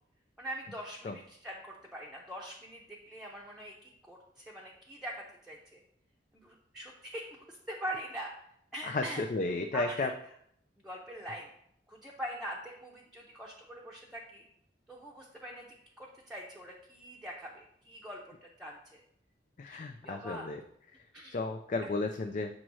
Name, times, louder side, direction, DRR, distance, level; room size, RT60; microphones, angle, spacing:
voice 1, 0.4-5.8 6.3-8.3 8.7-9.2 9.7-10.1 10.8-11.5 11.9-14.4 14.9-19.0 19.7-20.5 21.1-21.4 21.8-21.9, equal, 5° right, -3 dB, 0.7 m, -43 dB
voice 2, 8.9-10.1 19.6-20.6 21.3-22.5, left 3 dB, 45° left, 5 dB, 0.4 m, -33 dB
7.5 x 3.1 x 6.1 m, 0.70 s
head